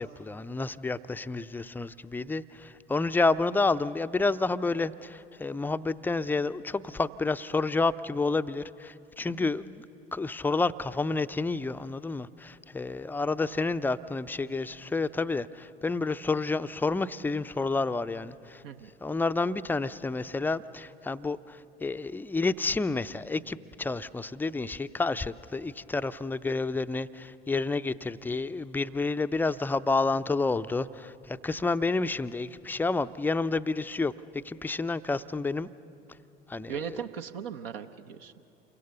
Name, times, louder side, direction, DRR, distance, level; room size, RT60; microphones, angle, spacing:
voice 1, 0.0-9.8 10.1-18.6 19.0-35.7 36.5-37.0, left 3 dB, 5° left, 12 dB, 0.5 m, -30 dB
voice 2, 36.7-38.4, right 8 dB, 65° right, 7 dB, 0.9 m, -38 dB
28.5 x 23.5 x 7.0 m, 2.7 s
figure-of-eight pair, 65°, 31 cm